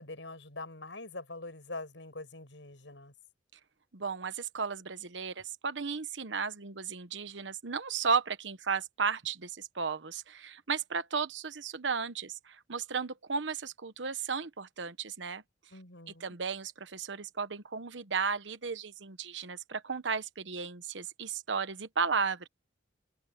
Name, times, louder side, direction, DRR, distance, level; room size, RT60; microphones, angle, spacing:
voice 1, 0.0-3.1 15.7-16.4, left 2 dB, 85° left, 7.0 m, -44 dB
voice 2, 3.9-15.4 16.2-22.5, right 5 dB, 85° right, 1.1 m, -34 dB
head